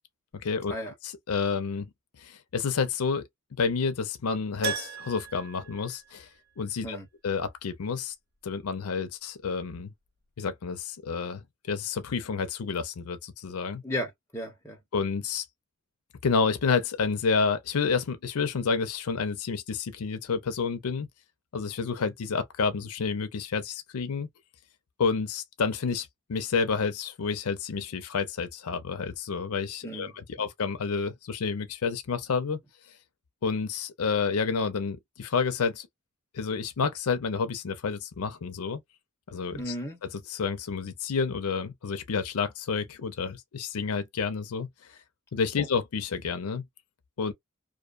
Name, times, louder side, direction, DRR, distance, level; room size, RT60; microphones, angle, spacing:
voice 1, 0.3-0.7 1.0-1.9 2.2-3.2 3.6-6.3 6.6-7.0 7.2-8.1 8.4-9.9 10.4-13.8 14.9-15.4 16.2-21.1 21.5-24.3 25.0-30.1 30.4-32.6 33.4-35.9 36.3-38.8 39.3-39.7 40.3-44.7 45.3-46.7 47.2-47.3, left 5 dB, 85° left, 0.5 m, -29 dB
Keyboard (musical), 4.6-6.7 6.9-7.0 9.7-9.8 10.1-10.2, right 5 dB, 45° right, 0.5 m, -37 dB
voice 2, 13.8-14.8 29.8-30.5 39.5-40.0 45.6-45.7, equal, 10° left, 1.0 m, -35 dB
2.5 x 2.2 x 2.4 m
head